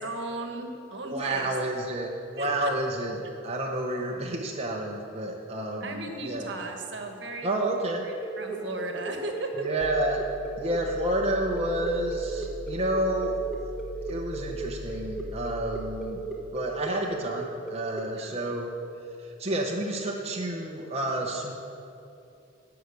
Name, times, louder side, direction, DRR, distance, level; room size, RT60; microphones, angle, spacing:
voice 1, 0.0-1.5 2.4-2.7 5.8-7.5 8.0-9.7 18.1-18.3, right 2 dB, 65° right, 4 dB, 1.2 m, -36 dB
voice 2, 1.0-6.5 7.4-8.1 9.6-10.2 10.6-13.4 14.1-16.2 16.5-18.7 19.2-21.5, right 1 dB, 30° right, 0 dB, 0.8 m, -30 dB
sound 1, 8.2-18.0, right 3 dB, ahead, 1.2 m, -36 dB
sound 2, 9.8-16.0, left 2 dB, 30° left, 0.6 m, -41 dB
12.0 x 5.8 x 8.0 m, 2.6 s
head